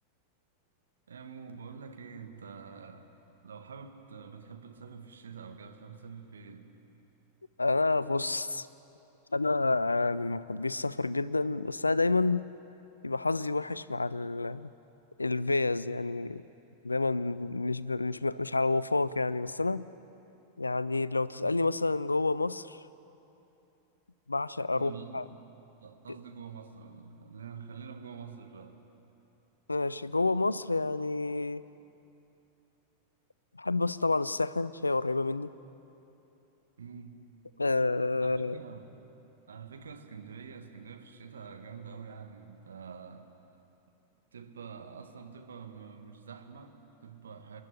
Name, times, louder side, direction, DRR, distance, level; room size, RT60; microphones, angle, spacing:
voice 1, 1.1-3.1 3.4-6.7 24.7-25.3 25.8-28.8 36.8-37.2 38.2-39.0 39.5-43.3 44.3-47.6, right 6 dB, 70° right, 5 dB, 1.8 m, -46 dB
voice 2, 7.6-8.7 9.3-12.5 13.0-14.7 15.2-16.4 16.8-19.8 20.6-22.8 24.3-25.2 29.7-31.6 33.6-35.5 37.6-38.5, left 3 dB, 80° left, 18 dB, 0.4 m, -29 dB
28.0 x 11.0 x 9.9 m, 2.9 s
figure-of-eight pair, 90°, 0 cm